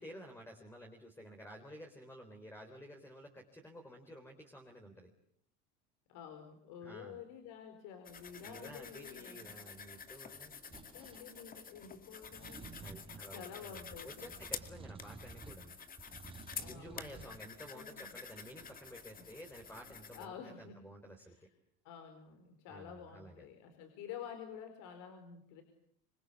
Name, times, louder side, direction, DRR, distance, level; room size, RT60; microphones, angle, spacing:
voice 1, 0.0-5.1 6.8-7.2 8.4-10.7 12.8-15.8 16.6-21.5 22.7-23.4, equal, 5° left, 2 dB, 3.8 m, -52 dB
voice 2, 6.1-9.6 9.9-10.1 10.7-12.8 13.3-14.3 16.5-17.3 17.7-18.1 19.2-19.3 19.8-20.8 21.2-21.5 21.8-25.6, left 7 dB, 70° left, 6 dB, 4.7 m, -50 dB
sound 1, 8.0-20.3, left 6 dB, 25° left, 2.1 m, -49 dB
sound 2, 10.7-11.2 12.2-13.3 13.9-15.6 16.0-17.3, right 4 dB, 15° right, 4.1 m, -52 dB
26.5 x 26.0 x 8.4 m, 0.67 s
cardioid pair, 125°, 32 cm